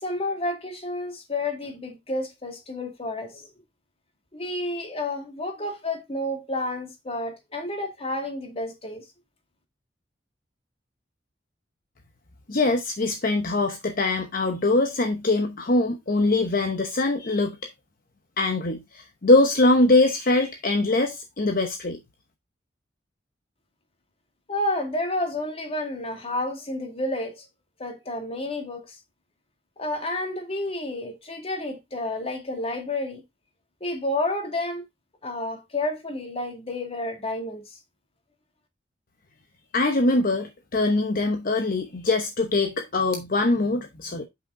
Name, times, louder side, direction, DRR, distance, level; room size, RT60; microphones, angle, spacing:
voice 1, 0.0-3.5 4.3-9.0 24.5-27.4 27.8-29.0 29.8-33.2 33.8-34.8 35.2-37.8, left 1 dB, 35° left, 2.0 m, -30 dB
voice 2, 12.5-17.6 18.4-22.0 39.7-44.3, left 2 dB, 50° left, 0.9 m, -22 dB
7.9 x 5.9 x 3.6 m
head